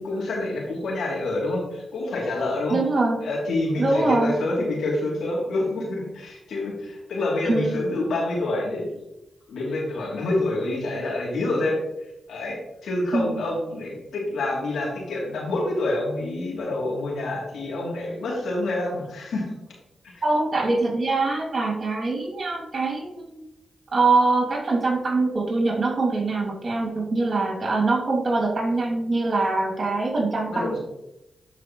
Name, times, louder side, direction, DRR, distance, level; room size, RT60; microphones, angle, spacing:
voice 1, 0.0-2.8 3.2-8.9 9.5-11.8 12.3-19.5 20.1-20.2 30.5-30.8, left 2 dB, 80° left, -3 dB, 3.0 m, -27 dB
voice 2, 2.7-3.2 3.8-4.3 7.5-7.8 13.1-13.4 20.2-23.4 23.9-30.8, right 3 dB, 50° right, -1 dB, 2.7 m, -23 dB
11.0 x 4.8 x 3.1 m, 0.89 s
supercardioid pair, 40°, 0 cm